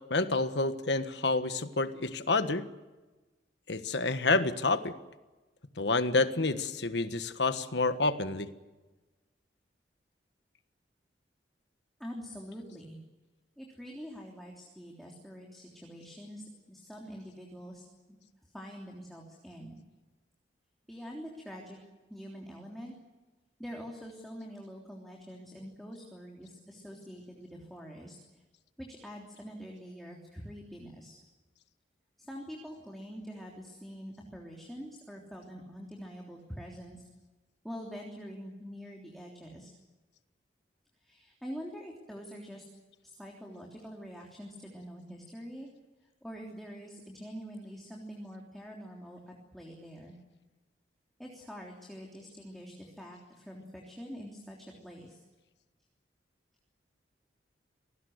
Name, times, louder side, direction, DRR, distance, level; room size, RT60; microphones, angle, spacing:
voice 1, 0.1-2.7 3.7-4.9 5.8-8.5, left 3 dB, 70° left, 10 dB, 1.5 m, -28 dB
voice 2, 12.0-13.0 13.6-18.2 18.4-19.8 20.9-21.8 22.1-22.9 23.6-28.4 28.8-31.2 32.2-37.1 37.6-39.7 41.0-42.6 43.0-45.7 46.2-50.1 51.2-55.2, equal, ahead, -1 dB, 3.3 m, -45 dB
28.0 x 19.0 x 8.0 m, 1.2 s
head